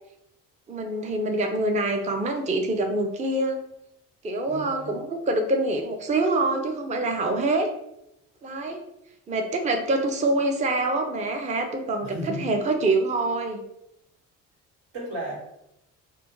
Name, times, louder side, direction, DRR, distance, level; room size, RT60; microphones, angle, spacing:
voice 1, 0.7-3.6 4.2-7.7 8.4-8.8 9.3-13.6, right 2 dB, 20° right, 4 dB, 0.5 m, -25 dB
voice 2, 4.5-4.9 12.0-12.5 14.9-15.3, right 1 dB, 85° right, -4 dB, 1.3 m, -34 dB
2.8 x 2.2 x 3.5 m, 0.84 s
supercardioid pair, 70°, 36 cm